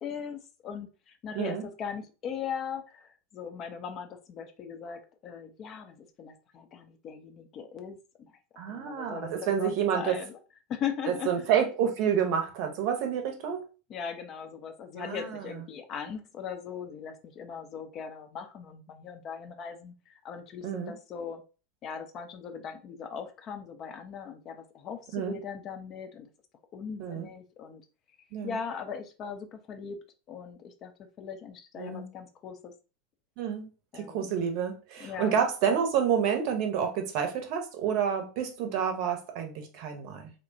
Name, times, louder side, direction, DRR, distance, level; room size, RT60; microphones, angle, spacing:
voice 1, 0.0-8.3 8.7-10.4 10.7-11.5 13.9-21.4 21.8-26.3 26.7-27.8 28.4-30.0 30.3-32.7 33.9-34.3 35.0-35.4, left 7 dB, 35° left, 6 dB, 0.5 m, -39 dB
voice 2, 1.3-1.6 8.6-10.2 11.1-13.6 15.0-15.5 20.6-20.9 25.1-25.3 27.0-27.3 28.3-28.6 31.8-32.1 33.4-33.7 33.9-40.3, right 8 dB, 50° right, 5 dB, 0.7 m, -29 dB
3.1 x 2.1 x 2.6 m, 0.33 s
figure-of-eight pair, 85°, 0 cm